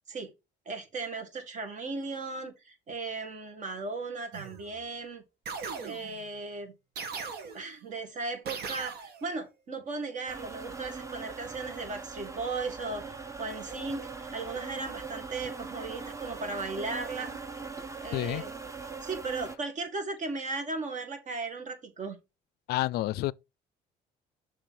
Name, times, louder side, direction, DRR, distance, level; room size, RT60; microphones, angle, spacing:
voice 1, 0.7-5.2 5.8-6.7 7.5-17.4 18.0-18.5 19.0-22.2, right 3 dB, 45° right, 1.9 m, -36 dB
sound 1, 4.3-4.8 5.5-6.3 7.0-7.8 8.5-9.3, right 5 dB, 70° right, 1.6 m, -39 dB
sound 2, 10.3-19.6, right 4 dB, 20° right, 0.8 m, -41 dB
voice 2, 18.1-18.4 22.7-23.3, left 16 dB, 70° left, 0.4 m, -29 dB
6.9 x 3.2 x 5.7 m
cardioid pair, 110°, 17 cm